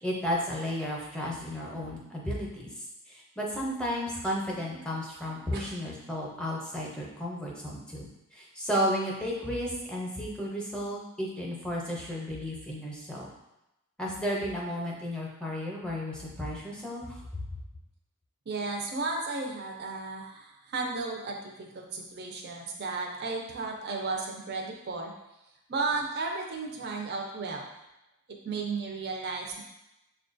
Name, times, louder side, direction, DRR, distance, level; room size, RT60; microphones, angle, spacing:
voice 1, 0.0-2.7 3.1-13.3 14.0-17.2, equal, 5° left, -3 dB, 0.6 m, -33 dB
voice 2, 18.5-25.1 25.7-27.7 28.4-29.6, right 3 dB, 50° right, 0 dB, 0.5 m, -34 dB
6.8 x 2.3 x 2.5 m, 0.92 s
head